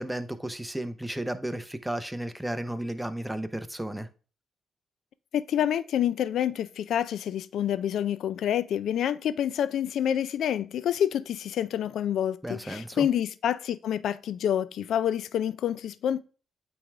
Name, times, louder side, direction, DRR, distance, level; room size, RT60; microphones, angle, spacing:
voice 1, 0.0-4.1 12.4-13.1, right 1 dB, 5° right, 0.8 m, -33 dB
voice 2, 5.3-16.2, left 10 dB, 75° left, 0.4 m, -28 dB
8.6 x 3.4 x 3.5 m
supercardioid pair, 65°, 0 cm